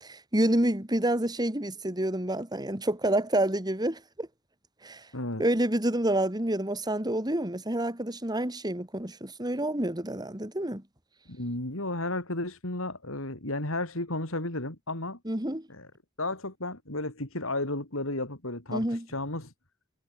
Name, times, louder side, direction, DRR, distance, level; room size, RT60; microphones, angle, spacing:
voice 1, 0.0-4.3 4.8-5.0 5.4-10.8 15.2-15.7 18.7-19.0, right 1 dB, 20° right, 2.7 m, -28 dB
voice 2, 5.1-5.4 11.3-15.2 15.7-15.9 16.2-19.5, left 2 dB, 65° left, 4.3 m, -33 dB
head